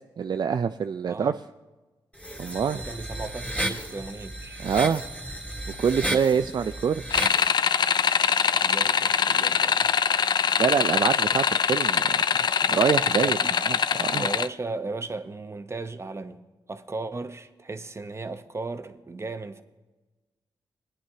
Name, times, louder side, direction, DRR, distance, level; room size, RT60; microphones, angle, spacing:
voice 1, 0.2-1.4 2.4-2.8 4.6-5.0 5.8-7.0 10.6-12.2 12.7-14.3, right 7 dB, 50° right, 0.4 m, -25 dB
voice 2, 1.1-1.4 2.7-4.6 6.0-6.1 8.6-9.9 13.0-13.6 14.0-16.4 16.7-19.6, right 3 dB, 30° right, 0.9 m, -36 dB
sound 1, 2.2-7.5, right 1 dB, 10° left, 2.8 m, -33 dB
sound 2, 7.1-14.5, left 7 dB, 50° left, 0.3 m, -23 dB
20.5 x 9.7 x 2.8 m
cardioid pair, 55°, 9 cm